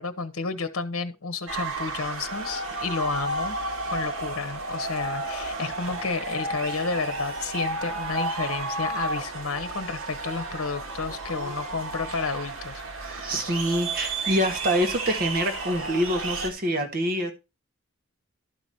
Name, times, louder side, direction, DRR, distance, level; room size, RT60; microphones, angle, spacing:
voice 1, 0.0-3.6 3.9-12.8, left 4 dB, 70° left, 0.9 m, -31 dB
sound 1, 1.5-16.5, right 2 dB, 70° right, 1.9 m, -32 dB
voice 2, 13.0-17.3, equal, 40° right, 1.4 m, -26 dB
11.5 x 5.0 x 4.2 m
head